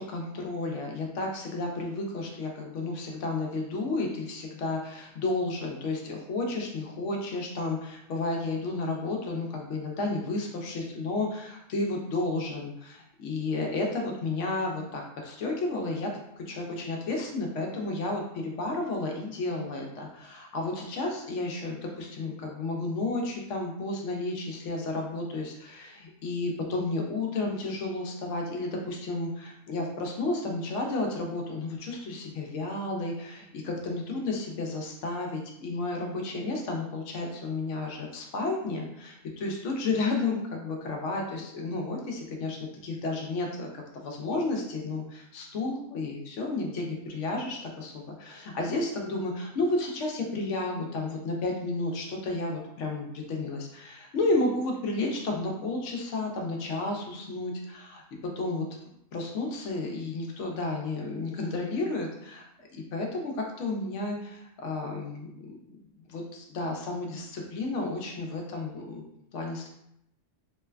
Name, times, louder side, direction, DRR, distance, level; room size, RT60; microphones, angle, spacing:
voice 1, 0.0-16.1 16.5-58.0 58.4-58.6 59.1-65.6 66.1-69.0 69.3-69.7, left 2 dB, 70° left, 1 dB, 0.9 m, -32 dB
3.1 x 2.1 x 2.3 m, 0.78 s
omnidirectional pair, 1.4 m